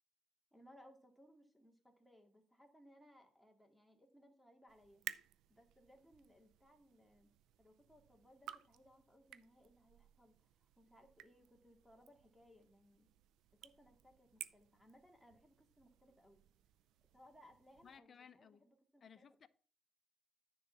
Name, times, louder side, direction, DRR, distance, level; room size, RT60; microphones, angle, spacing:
voice 1, 0.5-5.0 5.5-7.3 7.6-13.1 13.6-16.4 17.1-19.3, equal, ahead, 2.1 m, -65 dB
sound 1, 4.7-18.0, right 12 dB, 85° right, 0.4 m, -56 dB
voice 2, 17.8-18.6 19.0-19.5, left 7 dB, 50° left, 0.7 m, -60 dB
10.0 x 3.9 x 6.0 m
cardioid pair, 90°, 0 cm